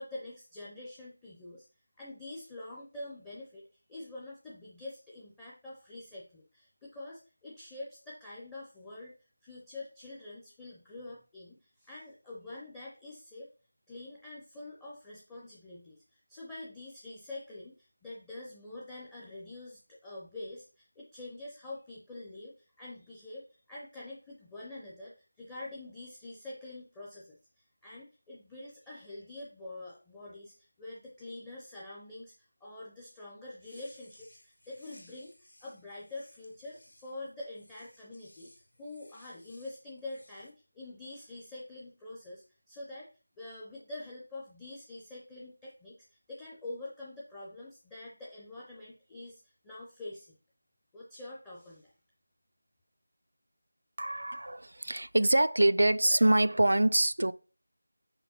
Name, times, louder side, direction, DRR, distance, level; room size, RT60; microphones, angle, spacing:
voice 1, 0.0-1.7 2.0-3.6 3.9-9.1 9.4-13.5 13.9-23.4 23.7-32.3 32.6-35.3 35.6-38.5 38.8-43.1 43.4-50.4 50.9-51.9, left 2 dB, 5° left, 0.4 m, -46 dB
sound 1, 33.5-40.5, left 1 dB, 80° left, 2.1 m, -60 dB
voice 2, 54.0-57.3, right 1 dB, 80° right, 0.3 m, -25 dB
5.8 x 4.2 x 4.1 m
figure-of-eight pair, 180°, 0 cm